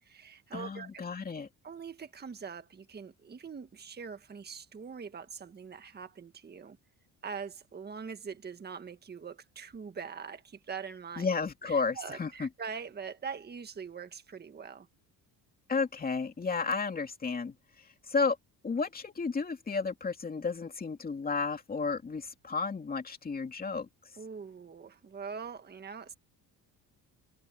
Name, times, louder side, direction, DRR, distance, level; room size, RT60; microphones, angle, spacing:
voice 1, 0.0-1.0 1.6-6.8 7.2-11.3 11.7-14.9 24.2-26.1, right 6 dB, 25° right, 1.6 m, -43 dB
voice 2, 0.5-1.5 11.2-12.5 15.7-18.4 18.6-23.9, left 4 dB, 25° left, 2.7 m, -32 dB
cardioid pair, 120°, 36 cm